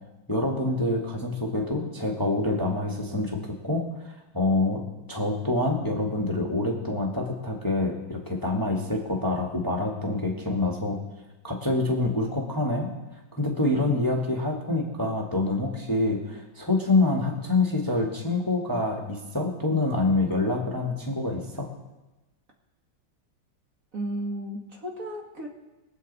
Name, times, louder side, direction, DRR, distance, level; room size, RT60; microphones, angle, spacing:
voice 1, 0.3-3.8 4.3-4.8 5.1-11.0 11.4-12.9 13.3-21.7, left 2 dB, 10° left, -1 dB, 1.4 m, -26 dB
voice 2, 23.9-25.5, right 1 dB, 45° right, 0 dB, 1.9 m, -33 dB
22.5 x 8.0 x 4.1 m, 1.1 s
omnidirectional pair, 2.1 m